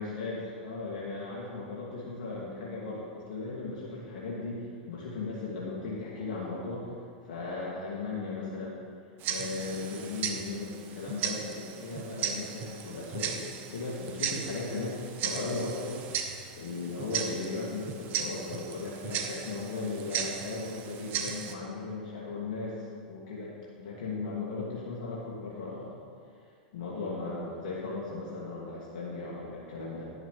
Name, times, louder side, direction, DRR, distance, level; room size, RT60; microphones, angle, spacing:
voice 1, 0.0-6.9 7.2-8.8 9.2-16.0 16.6-26.0 26.7-30.1, left 3 dB, 70° left, -6 dB, 2.3 m, -37 dB
Tick-tock, 9.2-21.5, right 8 dB, 45° right, 1.0 m, -37 dB
12.0 x 11.0 x 3.3 m, 2.2 s
hypercardioid pair, 105°, 4 cm